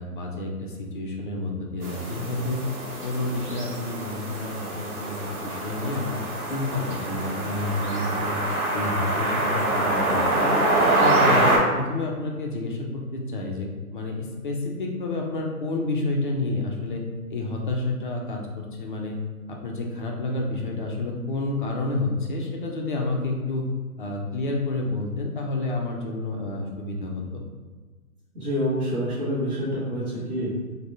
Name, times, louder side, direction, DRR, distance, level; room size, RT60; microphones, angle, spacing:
voice 1, 0.0-2.6 3.0-6.2 6.5-8.4 8.7-17.0 17.3-19.2 19.5-23.7 24.0-27.4, left 2 dB, 40° left, 0 dB, 0.4 m, -29 dB
sound 1, 1.8-11.6, right 2 dB, 75° right, 1.0 m, -25 dB
voice 2, 28.3-30.5, equal, 30° right, -11 dB, 0.9 m, -27 dB
3.3 x 2.1 x 2.6 m, 1.3 s
figure-of-eight pair, 130°, 44 cm